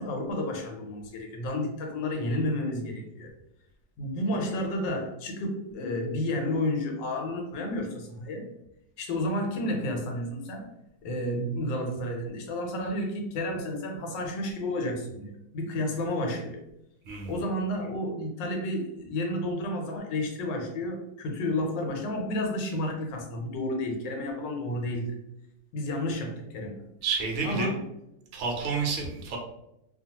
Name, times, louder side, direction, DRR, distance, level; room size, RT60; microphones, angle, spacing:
voice 1, 0.0-3.3 4.0-8.5 9.0-10.7 11.0-16.6 17.2-25.1 25.7-26.8 27.4-27.8, left 1 dB, 90° left, 2 dB, 1.3 m, -31 dB
voice 2, 17.1-17.4 27.0-27.7 28.3-29.4, right 4 dB, 70° right, 0 dB, 0.7 m, -30 dB
2.8 x 2.3 x 2.8 m, 0.84 s
omnidirectional pair, 1.9 m